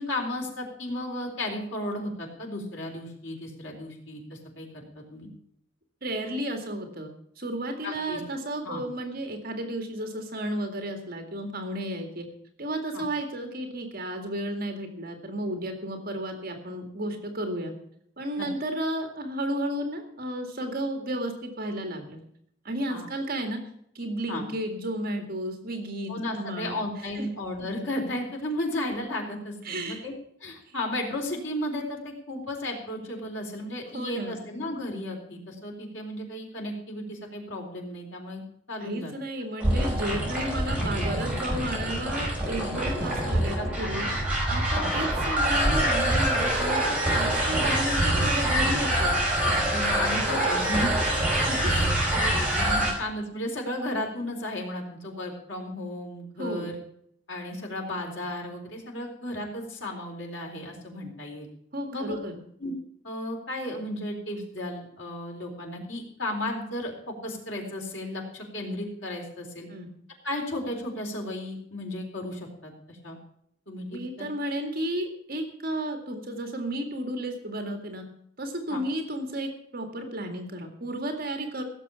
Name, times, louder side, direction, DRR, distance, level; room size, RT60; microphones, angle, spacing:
voice 1, 0.0-5.3 7.8-8.2 8.6-8.8 12.9-13.0 18.4-18.5 22.9-23.1 24.3-24.4 26.1-30.1 30.4-38.4 38.7-39.1 43.6-43.9 44.7-44.9 49.7-51.0 51.7-56.7 57.3-61.5 61.9-62.2 62.6-62.8 63.0-69.7 70.2-73.2 73.7-74.3 78.7-78.8, left 1 dB, 70° left, 0 dB, 4.1 m, -34 dB
voice 2, 6.0-12.3 12.6-17.7 18.2-22.2 22.6-23.6 23.9-26.7 27.1-27.3 29.6-30.1 30.7-30.8 33.9-34.4 38.8-44.1 44.5-46.8 47.1-49.1 51.5-51.8 56.4-56.7 61.7-62.4 69.7-69.9 73.9-78.0 78.4-81.6, right 1 dB, 50° right, 5 dB, 2.2 m, -33 dB
sound 1, 39.6-52.9, right 1 dB, 5° right, 5.3 m, -25 dB
16.5 x 7.3 x 7.0 m, 0.68 s
head